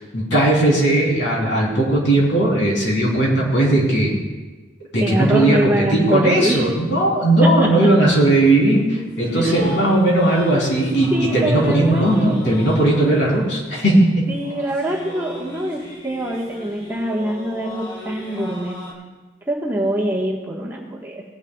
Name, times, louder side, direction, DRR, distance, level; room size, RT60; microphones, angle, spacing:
voice 1, 0.0-4.2 4.9-14.3, right 1 dB, 65° left, -3 dB, 3.4 m, -17 dB
voice 2, 5.0-6.7 7.4-7.9 9.3-9.7 11.1-12.4 14.3-18.8 19.5-21.2, right 1 dB, 10° right, -3 dB, 1.4 m, -24 dB
sound 1, 8.2-18.9, left 1 dB, 30° left, 2.5 m, -38 dB
19.0 x 10.5 x 2.3 m, 1.3 s
head